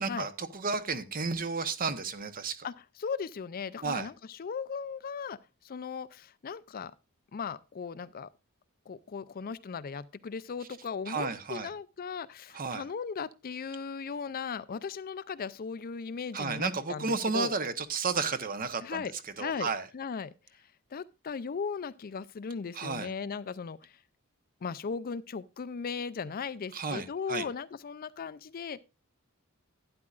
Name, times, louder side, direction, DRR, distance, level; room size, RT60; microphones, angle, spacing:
voice 1, 0.0-2.7 3.8-4.1 11.1-11.7 12.5-12.8 16.3-19.0 19.4-19.9 22.7-23.1 26.7-27.5, right 4 dB, 40° right, 0.9 m, -32 dB
voice 2, 3.0-5.4 5.6-6.9 7.3-8.3 8.9-17.5 18.8-19.1 19.4-19.7 19.9-20.6 20.9-24.0 24.6-28.8, left 5 dB, 40° left, 0.4 m, -37 dB
12.0 x 9.9 x 2.4 m
head